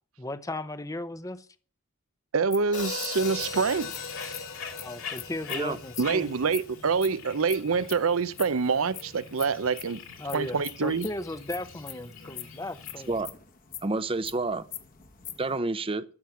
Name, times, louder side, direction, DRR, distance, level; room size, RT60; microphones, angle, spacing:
voice 1, 0.2-1.5 4.8-6.3 10.2-13.1, left 1 dB, 15° left, 0.7 m, -36 dB
voice 2, 2.3-3.9 6.0-10.0 10.3-11.1, right 5 dB, 80° right, 0.7 m, -26 dB
sound 1, 2.5-6.0 6.4-8.0 8.4-15.6, left 11 dB, 40° left, 1.3 m, -43 dB
Hi-hat, 2.7-6.9, left 5 dB, 90° left, 2.4 m, -38 dB
Bird, 3.2-13.2, left 5 dB, 65° left, 3.1 m, -44 dB
voice 3, 13.8-14.6 15.4-16.0, right 3 dB, 25° right, 0.7 m, -29 dB
13.5 x 6.5 x 7.1 m
head